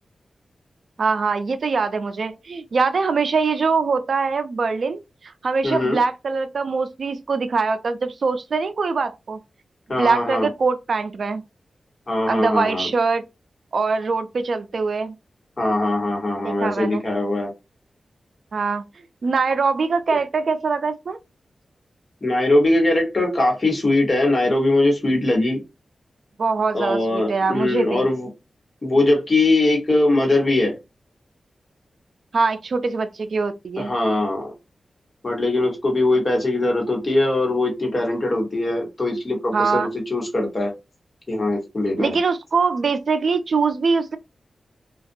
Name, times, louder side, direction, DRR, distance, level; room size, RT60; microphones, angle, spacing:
voice 1, 1.0-9.4 10.0-11.4 12.3-13.2 13.7-15.1 16.4-17.0 18.5-18.8 19.2-21.2 26.4-28.1 32.3-33.9 39.5-39.9 42.0-44.2, right 4 dB, 65° right, 0.3 m, -23 dB
voice 2, 5.6-6.0 9.9-10.5 12.1-12.9 15.6-17.5 22.2-25.6 26.7-28.3 28.8-30.7 33.8-34.5 35.2-39.8 40.1-40.7 41.3-42.2, left 2 dB, 40° left, 1.2 m, -21 dB
2.5 x 2.2 x 2.6 m
wide cardioid pair, 90°, 0 cm